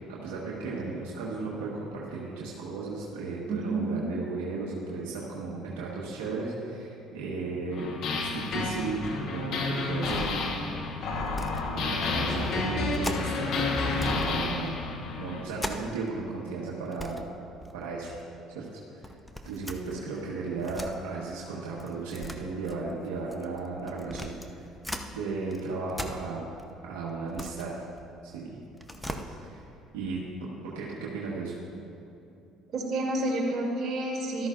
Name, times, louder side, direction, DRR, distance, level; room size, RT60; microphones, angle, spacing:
voice 1, 0.1-11.2 11.7-13.5 13.8-14.9 15.1-17.2 17.7-18.1 18.5-19.1 19.4-24.4 25.1-26.5 26.8-27.7 28.2-28.7 29.0-29.6 29.9-31.5, right 3 dB, 90° right, -5 dB, 1.4 m, -35 dB
voice 2, 3.5-4.0 32.7-34.5, right 2 dB, 55° right, -2 dB, 2.7 m, -29 dB
sound 1, 7.7-15.4, left 3 dB, 65° left, 1.3 m, -30 dB
sound 2, 11.3-11.7 12.0-12.2 12.9-13.5 13.9-14.3 14.6-16.2 16.5-16.6 16.8-17.3 17.6-18.2 19.0-20.9 21.8-25.1 25.5-26.7 27.1-28.4 28.7-29.2, left 1 dB, 5° left, 0.8 m, -40 dB
13.5 x 12.5 x 2.6 m, 2.8 s
supercardioid pair, 75°, 0 cm